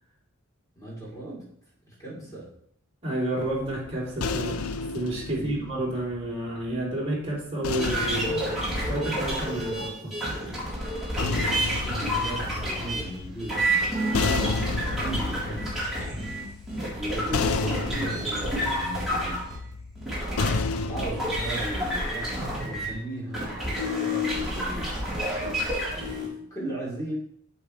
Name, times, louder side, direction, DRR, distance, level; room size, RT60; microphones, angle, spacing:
voice 1, 0.8-1.5 1.9-2.5 5.3-5.6 11.2-14.4 15.0-15.8 16.7-19.4 20.9-24.9 26.0-27.2, right 1 dB, 15° left, -6 dB, 3.7 m, -37 dB
voice 2, 3.0-4.6 4.9-8.4 8.7-10.2, right 1 dB, 30° right, -5 dB, 3.3 m, -30 dB
sound 1, 3.4-6.7 7.6-9.9 10.9-21.9, left 4 dB, 80° left, 0.5 m, -32 dB
sound 2, 7.8-22.9 23.3-26.3, equal, ahead, 3.6 m, -29 dB
8.3 x 7.4 x 3.3 m, 0.68 s
head